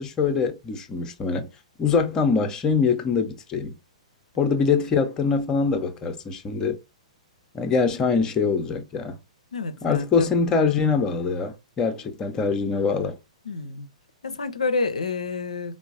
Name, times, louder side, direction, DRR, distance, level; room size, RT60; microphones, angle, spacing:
voice 1, 0.0-1.5 1.8-3.7 4.4-6.8 7.5-9.2 9.8-13.2, left 5 dB, 20° left, 0.5 m, -23 dB
voice 2, 9.5-10.3 13.5-13.9 14.2-15.8, left 3 dB, 75° left, 0.4 m, -29 dB
4.5 x 2.0 x 2.4 m
figure-of-eight pair, 110°, 4 cm